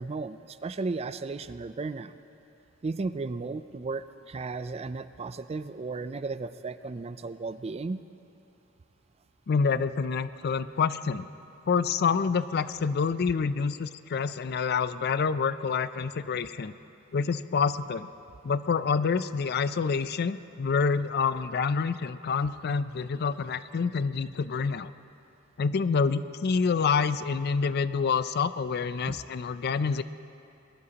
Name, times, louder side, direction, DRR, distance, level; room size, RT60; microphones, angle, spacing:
voice 1, 0.0-2.1 2.8-8.0 29.1-29.2, right 3 dB, 30° right, 13 dB, 0.4 m, -34 dB
voice 2, 9.5-11.3 11.7-16.7 17.1-18.1 18.4-24.9 25.6-30.0, left 5 dB, 50° left, 14 dB, 0.4 m, -27 dB
22.0 x 20.0 x 2.9 m, 2.6 s
head